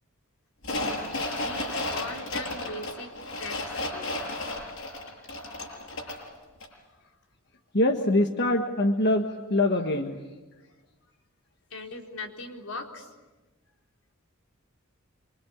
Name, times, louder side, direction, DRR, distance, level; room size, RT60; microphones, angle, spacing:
sound 1, 0.6-6.3 6.6-6.7, left 2 dB, 65° left, 7.6 m, -33 dB
voice 1, 1.1-3.1 3.4-4.3 11.7-13.1, left 2 dB, 85° left, 1 dB, 4.2 m, -40 dB
voice 2, 7.7-10.2, left 1 dB, 50° left, 4 dB, 1.5 m, -24 dB
27.0 x 25.0 x 8.6 m, 1.2 s
head